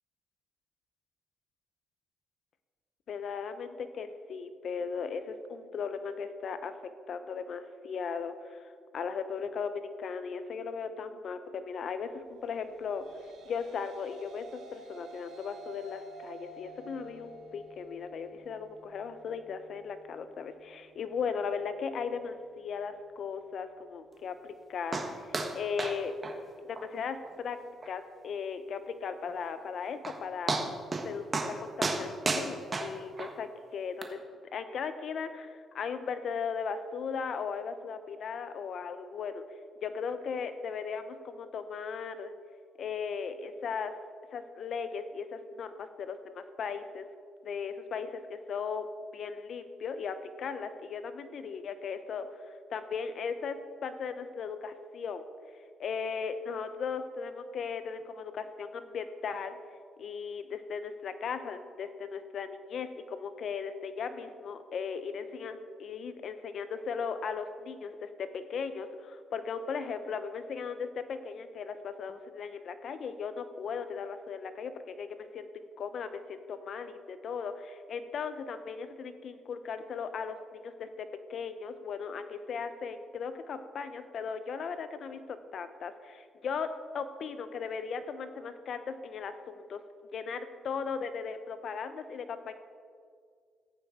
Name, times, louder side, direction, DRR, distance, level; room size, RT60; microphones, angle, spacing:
voice 1, 3.1-6.7 7.1-13.0 13.5-26.1 26.6-27.6 27.8-30.6 30.9-34.2 34.5-42.3 42.8-43.9 44.3-47.0 47.4-48.9 49.1-55.2 55.8-59.6 60.0-86.7 86.9-92.5, left 6 dB, 60° left, 10 dB, 0.9 m, -37 dB
sound 1, 12.6-21.1, right 2 dB, 80° right, 2.0 m, -51 dB
sound 2, 24.9-25.1 25.3-25.5 25.8-26.0 26.2-26.3 26.8-26.9 27.3-27.4 27.8-27.9 29.6-29.7 30.0-30.2 30.5-31.1 31.3-31.5 31.8-33.3 34.0-34.1, right 3 dB, 35° right, 1.4 m, -31 dB
14.0 x 8.8 x 4.3 m, 2.1 s
cardioid pair, 90°, 0 cm